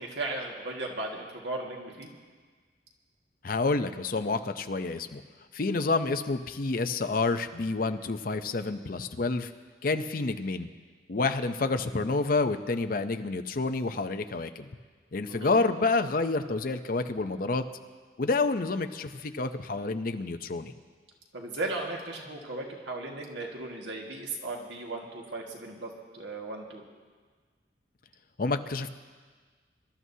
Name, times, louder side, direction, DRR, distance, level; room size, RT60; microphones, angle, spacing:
voice 1, 0.0-2.1 15.3-15.7 21.3-26.8, right 2 dB, 90° right, 0 dB, 1.8 m, -36 dB
voice 2, 3.4-5.2 5.5-9.5 9.8-10.7 11.1-14.7 15.1-17.7 18.2-20.7 28.4-28.9, left 3 dB, 50° left, 8 dB, 0.6 m, -29 dB
25.5 x 12.5 x 2.8 m, 1.5 s
head